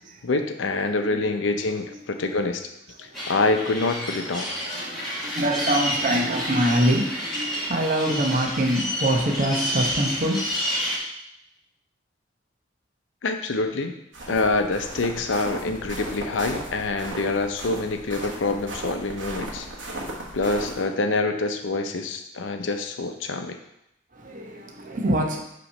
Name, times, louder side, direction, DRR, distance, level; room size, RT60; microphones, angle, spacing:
voice 1, 0.2-2.6 3.0-4.5 13.2-13.9 14.3-19.7 20.3-23.6, left 3 dB, 85° left, 6 dB, 0.6 m, -26 dB
voice 2, 0.7-1.2 1.9-2.0 2.3-2.4 3.0-3.2 4.4-10.5 24.1-25.4, right 1 dB, 45° right, 2 dB, 0.8 m, -25 dB
sound 1, 3.1-11.0, equal, ahead, 1.6 m, -29 dB
sound 2, 14.1-20.8, right 1 dB, 75° right, 1.1 m, -36 dB
5.8 x 3.1 x 5.3 m, 0.82 s
head